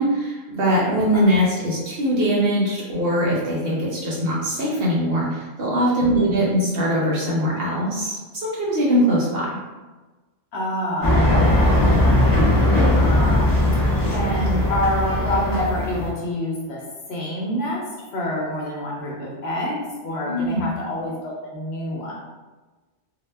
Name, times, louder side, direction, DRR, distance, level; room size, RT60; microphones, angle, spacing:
voice 1, 0.0-9.5 20.2-20.7, equal, 60° right, -5 dB, 0.7 m, -21 dB
voice 2, 6.0-6.5 10.5-13.8 14.1-16.8 17.1-17.8 18.1-22.1, equal, 65° left, -3 dB, 0.8 m, -27 dB
sound 1, 11.0-16.1, left 1 dB, 30° left, 0.4 m, -18 dB
2.1 x 2.1 x 3.2 m, 1.2 s
omnidirectional pair, 1.3 m